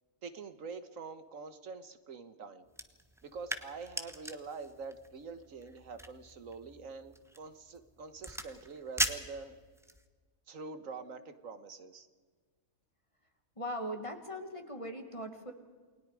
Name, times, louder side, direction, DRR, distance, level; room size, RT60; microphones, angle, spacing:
voice 1, 0.2-2.7 3.2-9.6 10.5-12.1, right 4 dB, 70° right, 11 dB, 1.7 m, -45 dB
sound 1, 2.7-10.1, equal, ahead, 1.1 m, -41 dB
voice 2, 13.6-15.5, equal, 20° left, 5 dB, 2.0 m, -40 dB
29.0 x 20.5 x 4.9 m, 1.5 s
omnidirectional pair, 1.5 m